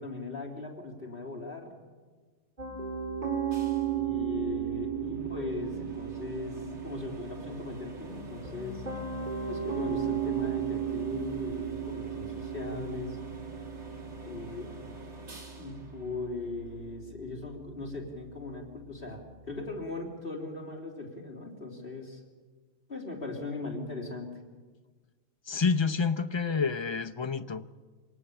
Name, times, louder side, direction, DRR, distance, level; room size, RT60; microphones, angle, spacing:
voice 1, 0.0-1.7 3.9-8.8 9.5-13.2 14.2-14.7 15.6-22.2 22.9-24.3, left 3 dB, 50° left, 3.8 m, -39 dB
Piano, 2.6-19.7, right 9 dB, 40° right, 4.6 m, -36 dB
sound 1, 3.5-17.0, right 1 dB, 70° right, 2.7 m, -48 dB
voice 2, 25.5-27.7, left 5 dB, 30° left, 0.5 m, -28 dB
24.5 x 19.0 x 6.9 m
omnidirectional pair, 1.2 m